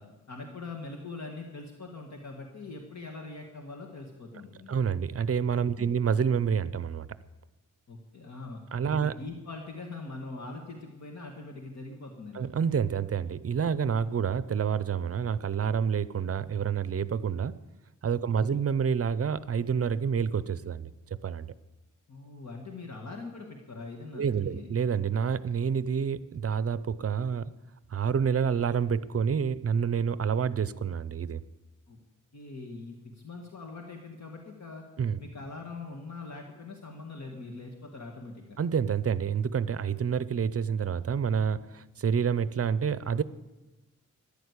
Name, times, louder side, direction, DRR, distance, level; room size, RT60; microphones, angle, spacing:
voice 1, 0.0-4.8 5.7-5.9 7.9-8.6 8.9-12.5 13.9-14.0 18.2-18.6 22.1-24.7 31.9-32.0 32.3-34.8 35.2-38.6, left 3 dB, 60° left, 2 dB, 1.8 m, -42 dB
voice 2, 4.7-7.1 8.7-9.1 12.3-17.6 18.0-20.9 21.2-21.5 24.1-27.5 27.9-31.4 35.0-35.2 38.6-43.2, right 7 dB, 50° right, 17 dB, 0.6 m, -28 dB
14.0 x 10.5 x 8.2 m, 1.0 s
wide cardioid pair, 160°, 31 cm